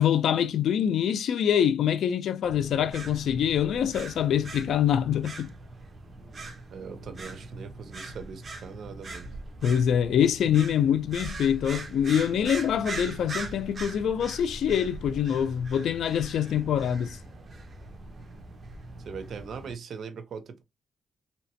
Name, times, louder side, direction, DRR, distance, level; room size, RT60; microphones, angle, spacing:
voice 1, 0.0-5.5 9.6-17.2, left 9 dB, 80° left, 0.4 m, -25 dB
sound 1, 2.4-19.7, right 2 dB, 40° right, 0.9 m, -41 dB
voice 2, 6.7-9.3 19.0-20.6, right 5 dB, 65° right, 0.6 m, -40 dB
3.3 x 2.9 x 2.8 m
cardioid pair, 110°, 0 cm